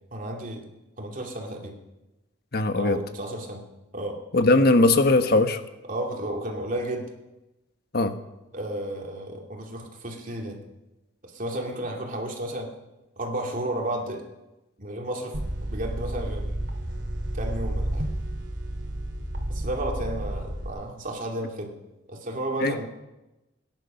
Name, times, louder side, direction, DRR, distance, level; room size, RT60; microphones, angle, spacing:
voice 1, 0.1-0.7 1.0-1.8 2.7-3.6 3.9-4.2 5.9-7.1 8.5-10.6 11.2-12.7 13.2-14.2 14.8-16.6 17.3-18.1 19.5-21.7 22.1-22.9, right 1 dB, 45° right, 1 dB, 2.8 m, -32 dB
voice 2, 2.5-3.0 4.3-5.6 7.9-8.1 22.6-22.7, left 2 dB, 55° left, 8 dB, 1.1 m, -19 dB
sound 1, 15.3-20.7, right 1 dB, 75° right, 2.6 m, -31 dB
20.0 x 10.5 x 5.8 m, 1.0 s
head